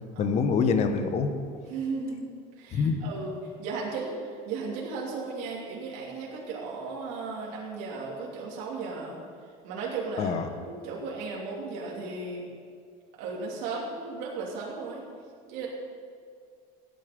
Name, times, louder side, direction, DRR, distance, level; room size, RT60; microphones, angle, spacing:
voice 1, 0.2-1.3 2.7-3.0 10.2-10.4, left 5 dB, 40° left, 8 dB, 1.1 m, -25 dB
voice 2, 1.7-2.2 2.6-9.2 9.6-12.5 13.2-15.0 15.4-15.7, right 4 dB, 75° right, -4 dB, 2.9 m, -35 dB
16.0 x 9.3 x 5.3 m, 2.2 s
cardioid pair, 160°, 18 cm